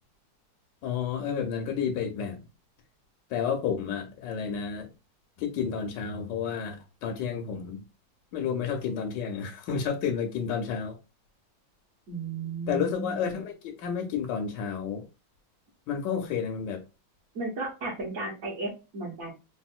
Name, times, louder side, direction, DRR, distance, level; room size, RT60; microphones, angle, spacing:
voice 1, 0.8-2.4 3.3-4.9 5.4-7.8 8.3-11.0 12.7-15.0 15.9-16.8, left 7 dB, 75° left, 1.3 m, -31 dB
voice 2, 12.1-13.3 17.3-19.3, right 3 dB, 50° right, 1.4 m, -34 dB
3.6 x 2.5 x 2.4 m
omnidirectional pair, 2.1 m